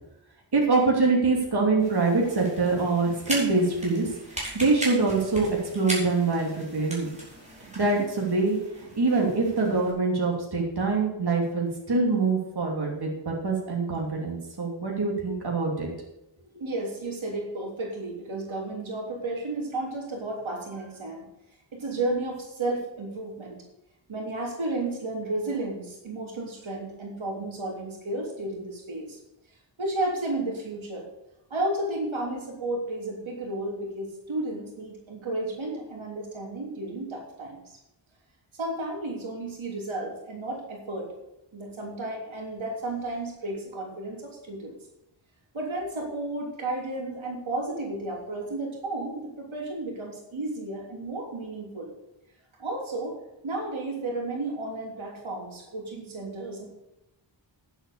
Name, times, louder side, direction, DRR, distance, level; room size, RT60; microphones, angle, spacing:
voice 1, 0.5-4.1 4.5-5.5 5.7-7.1 7.7-8.6 9.0-15.9, right 3 dB, 55° right, -2 dB, 3.0 m, -24 dB
sound 1, 1.8-9.9, right 1 dB, 15° right, 4.8 m, -38 dB
voice 2, 16.6-21.3 21.7-23.6 24.1-29.2 29.8-31.0 31.5-37.8 38.5-41.1 41.5-44.8 45.5-51.9 52.6-53.2 53.4-56.6, right 2 dB, 85° right, -1 dB, 3.3 m, -33 dB
10.0 x 8.1 x 6.8 m, 0.88 s
wide cardioid pair, 100°, 46 cm